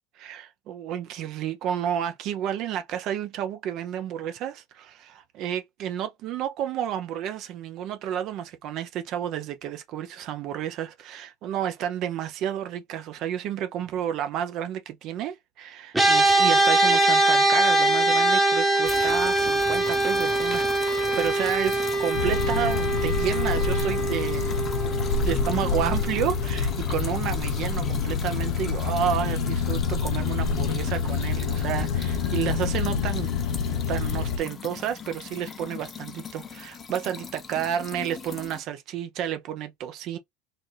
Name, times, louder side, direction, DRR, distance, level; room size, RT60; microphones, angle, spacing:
voice 1, 0.2-25.0 25.2-33.3 33.9-40.2, right 10 dB, 55° right, 0.7 m, -31 dB
sound 1, 15.9-27.4, right 2 dB, 10° right, 1.0 m, -23 dB
sound 2, 18.8-38.6, left 5 dB, 30° left, 0.7 m, -38 dB
sound 3, 22.1-34.4, left 5 dB, 75° left, 0.9 m, -27 dB
4.1 x 2.5 x 3.3 m
supercardioid pair, 120°, 0 cm